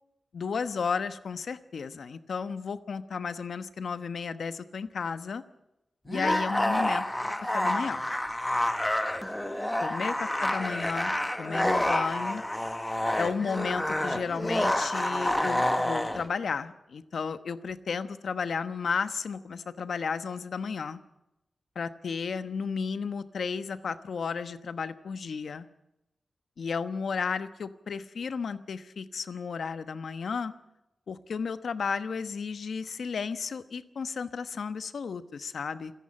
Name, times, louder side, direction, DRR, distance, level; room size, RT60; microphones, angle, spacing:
voice 1, 0.3-5.4 6.1-8.0 9.8-12.4 13.2-21.0 21.7-25.7 26.6-30.5 31.1-35.9, left 5 dB, 80° left, 11 dB, 1.1 m, -33 dB
sound 1, 6.1-16.2, left 1 dB, 10° left, 1.4 m, -28 dB
27.5 x 11.0 x 8.8 m, 0.89 s
wide cardioid pair, 125°, 0 cm